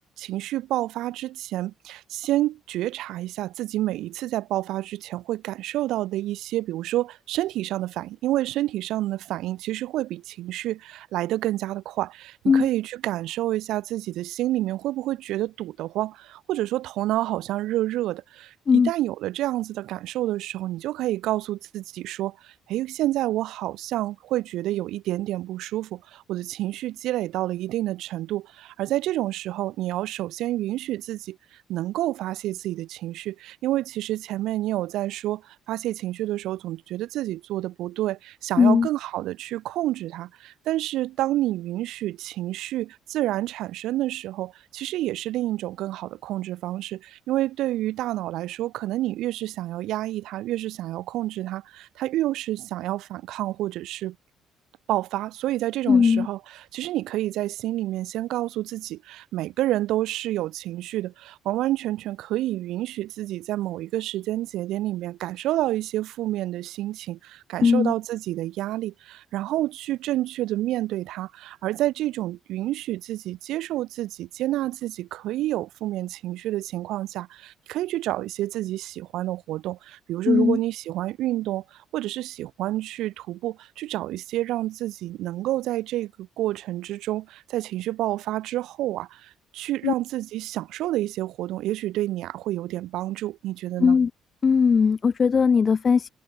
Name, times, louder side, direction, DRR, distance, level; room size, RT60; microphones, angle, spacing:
voice 1, 0.0-31.4 31.7-54.2 54.9-94.0, right 15 dB, 75° right, 0.7 m, -29 dB
voice 2, 38.6-38.9 55.9-56.3 67.6-67.9 80.3-80.6 89.8-89.9 93.8-94.1 94.4-96.1, left 6 dB, 25° left, 0.3 m, -19 dB
cardioid pair, 180°, 0 cm